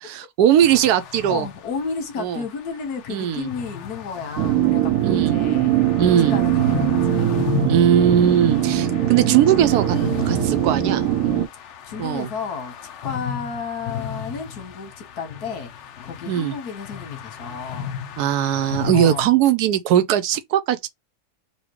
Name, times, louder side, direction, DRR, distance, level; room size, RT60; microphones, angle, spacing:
voice 1, 0.0-1.5 2.2-2.4 3.1-3.5 5.0-5.3 6.0-6.4 7.7-11.1 12.0-12.3 16.3-16.5 18.2-20.9, right 10 dB, 90° right, 1.2 m, -19 dB
sound 1, 0.6-19.3, left 7 dB, 65° left, 0.7 m, -34 dB
voice 2, 1.3-5.7 6.3-6.6 7.0-7.5 8.4-8.7 11.2-12.7 13.0-17.9 18.9-19.3, left 5 dB, 80° left, 1.7 m, -32 dB
sound 2, 4.4-11.5, right 11 dB, 70° right, 0.9 m, -21 dB
4.2 x 2.3 x 3.0 m
omnidirectional pair, 1.6 m